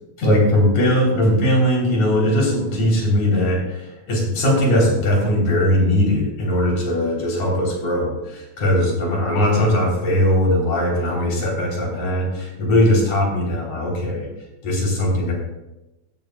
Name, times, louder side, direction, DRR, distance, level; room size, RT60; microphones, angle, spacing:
voice 1, 0.2-14.3 14.6-15.3, left 1 dB, 75° left, -2 dB, 4.8 m, -19 dB
16.0 x 13.0 x 2.3 m, 0.97 s
omnidirectional pair, 3.4 m